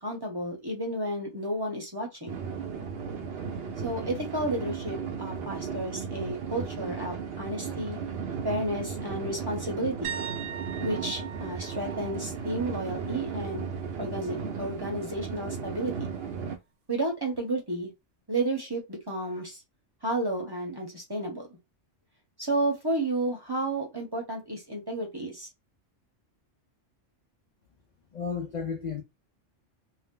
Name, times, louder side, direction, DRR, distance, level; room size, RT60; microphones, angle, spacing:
voice 1, 0.0-2.3 3.8-8.0 8.4-10.2 10.8-13.7 14.0-15.9 16.9-17.9 18.3-19.6 20.0-21.5 22.4-25.5, right 1 dB, 25° right, 0.8 m, -32 dB
sound 1, 2.3-16.6, right 6 dB, 60° right, 0.8 m, -35 dB
sound 2, 10.0-13.8 14.1-14.5 17.3-17.4, right 8 dB, 85° right, 1.0 m, -41 dB
voice 2, 28.1-29.0, left 6 dB, 55° left, 0.5 m, -33 dB
2.7 x 2.0 x 3.6 m
omnidirectional pair, 1.2 m